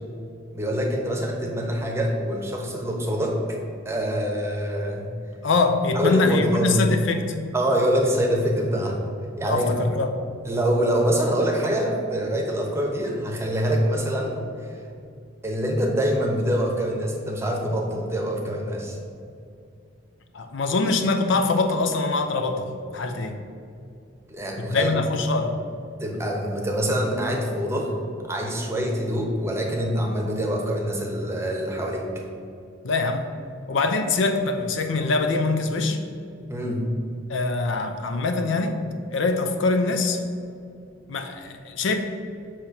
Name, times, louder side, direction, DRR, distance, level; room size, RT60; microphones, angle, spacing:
voice 1, 0.5-3.6 3.8-5.1 5.9-6.8 7.5-9.0 9.4-9.7 10.4-14.4 15.4-19.0 24.3-24.9 26.0-27.9 28.3-32.2 36.5-36.9, equal, 15° right, 0 dB, 0.8 m, -25 dB
voice 2, 5.4-7.3 9.5-10.1 20.3-23.4 24.6-25.5 32.8-33.3 33.7-36.0 37.3-38.8 39.1-40.2 41.1-42.0, left 3 dB, 70° left, 6 dB, 0.5 m, -23 dB
6.5 x 2.9 x 5.7 m, 2.5 s
head